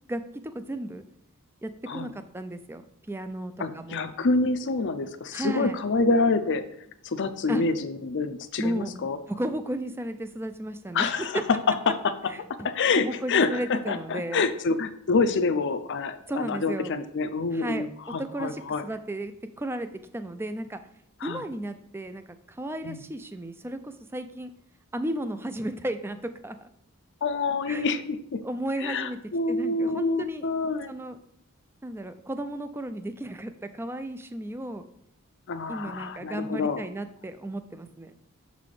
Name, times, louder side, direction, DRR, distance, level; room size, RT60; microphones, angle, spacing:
voice 1, 0.1-1.0 1.6-2.8 3.1-4.1 5.3-5.8 7.5-7.6 8.6-8.9 9.3-11.4 12.3-12.7 13.0-14.5 16.3-16.9 17.5-17.9 18.2-20.8 21.2-24.5 24.9-26.7 27.7-27.9 28.4-29.2 29.5-30.5 30.9-31.2 31.8-34.8 35.7-38.1, right 1 dB, 10° right, 10 dB, 0.4 m, -34 dB
voice 2, 3.6-6.6 7.0-9.2 10.9-11.3 11.9-12.0 12.6-18.8 21.2-21.4 22.8-23.0 27.2-28.4 28.8-30.9 35.5-36.8, left 3 dB, 55° left, 9 dB, 0.5 m, -27 dB
6.7 x 4.1 x 4.8 m, 0.75 s
head